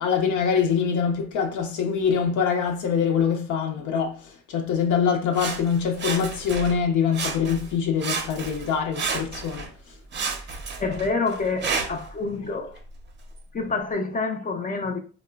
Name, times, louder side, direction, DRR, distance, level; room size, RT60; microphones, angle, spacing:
voice 1, 0.0-9.6, left 7 dB, 75° left, 0.6 m, -24 dB
Sawing, 5.3-6.8 7.1-7.7 8.0-9.7 10.1-12.1 12.8-12.9, right 5 dB, 35° right, 0.5 m, -31 dB
voice 2, 10.8-12.8 13.5-15.0, left 4 dB, 30° left, 0.4 m, -27 dB
3.1 x 2.0 x 2.3 m
cardioid pair, 90°, 30 cm